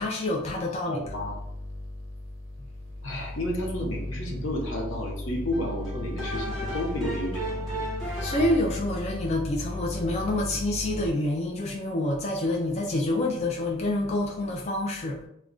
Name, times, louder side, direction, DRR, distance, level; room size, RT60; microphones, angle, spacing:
voice 1, 0.0-1.0 8.2-15.2, left 1 dB, 35° left, -1 dB, 0.4 m, -27 dB
voice 2, 0.9-1.4 3.0-7.8, left 1 dB, 85° left, 0 dB, 0.7 m, -32 dB
sound 1, 1.0-11.1, left 1 dB, 75° right, 0.6 m, -36 dB
sound 2, 5.5-8.9, right 1 dB, ahead, 0.9 m, -35 dB
2.4 x 2.2 x 3.6 m, 0.74 s
head